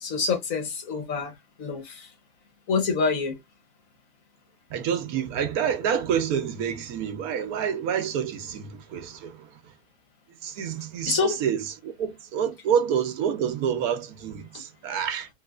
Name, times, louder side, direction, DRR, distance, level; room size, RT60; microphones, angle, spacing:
voice 1, 0.0-1.3 1.6-2.1 2.7-3.4 11.1-11.4, left 5 dB, 65° left, 1.2 m, -26 dB
voice 2, 4.7-9.5 10.4-15.3, right 8 dB, 75° right, 1.1 m, -28 dB
3.1 x 3.0 x 2.3 m
omnidirectional pair, 1.6 m